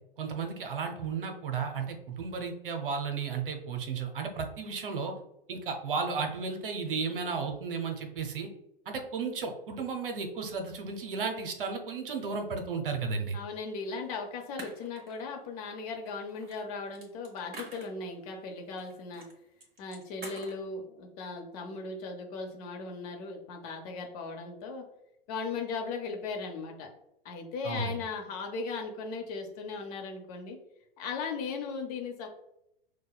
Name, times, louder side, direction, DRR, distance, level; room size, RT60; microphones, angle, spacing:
voice 1, 0.2-5.1 5.5-8.5 8.9-13.4 27.6-28.0, right 5 dB, 65° right, 4 dB, 0.8 m, -34 dB
voice 2, 13.3-19.2 19.8-24.8 25.3-26.9 27.2-30.6 31.0-32.3, left 4 dB, 40° left, 2 dB, 0.8 m, -37 dB
sound 1, 13.9-14.0 14.6-15.4 16.1-18.3 18.8-19.3 19.6-20.6, right 2 dB, 30° right, 1.4 m, -47 dB
6.2 x 2.2 x 2.3 m, 0.80 s
figure-of-eight pair, 100°, 29 cm